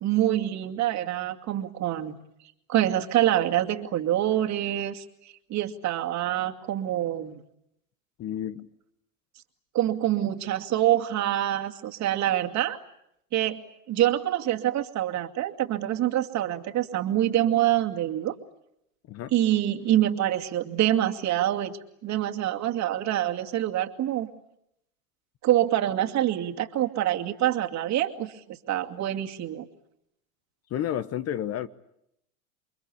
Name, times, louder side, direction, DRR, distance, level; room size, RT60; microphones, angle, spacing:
voice 1, 0.0-2.2 2.7-5.0 5.5-7.4 9.7-12.8 13.3-13.6 13.9-18.3 19.3-24.3 25.4-29.7, right 12 dB, 40° right, 2.5 m, -26 dB
voice 2, 8.2-8.7 19.1-19.3 30.7-31.7, left 10 dB, 35° left, 1.2 m, -31 dB
29.0 x 23.5 x 8.6 m
hypercardioid pair, 95°, 44 cm